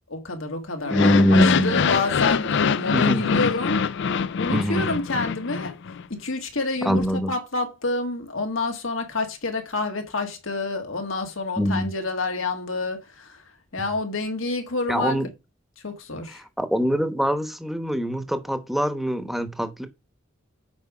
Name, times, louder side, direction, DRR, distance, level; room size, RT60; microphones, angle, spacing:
voice 1, 0.1-3.9 4.4-5.8 6.1-13.4 13.7-15.2 15.8-16.4, left 3 dB, 85° left, 1.7 m, -28 dB
sound 1, 0.8-6.0, left 6 dB, 65° left, 0.4 m, -24 dB
voice 2, 0.9-1.9 2.9-3.4 4.5-4.9 6.8-7.3 11.6-11.9 14.9-15.3 16.6-19.9, equal, ahead, 1.0 m, -23 dB
8.3 x 4.9 x 4.9 m
head